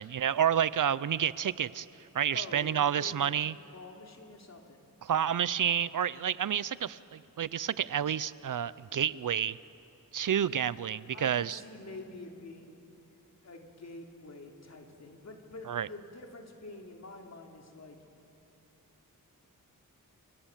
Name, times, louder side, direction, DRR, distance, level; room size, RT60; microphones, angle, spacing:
voice 1, 0.0-1.9 2.1-3.6 5.0-9.6 10.1-11.6 15.7-15.9, right 9 dB, 65° right, 18 dB, 0.6 m, -29 dB
voice 2, 2.3-3.3 3.7-4.8 11.1-13.1 13.4-18.0, left 2 dB, 50° left, 2 dB, 3.2 m, -47 dB
28.5 x 27.5 x 7.3 m, 2.8 s
wide cardioid pair, 135°, 34 cm